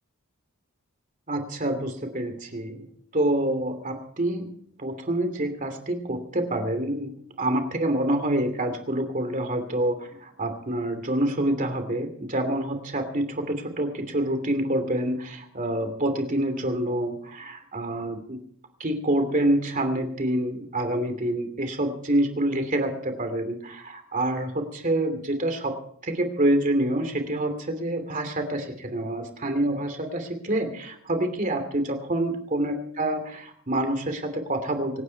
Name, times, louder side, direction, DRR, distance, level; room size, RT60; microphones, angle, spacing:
voice 1, 1.3-2.9 3.1-4.5 4.8-18.4 18.8-25.8 26.0-35.0, right 1 dB, 35° right, 6 dB, 2.8 m, -27 dB
25.5 x 9.6 x 4.7 m, 0.63 s
head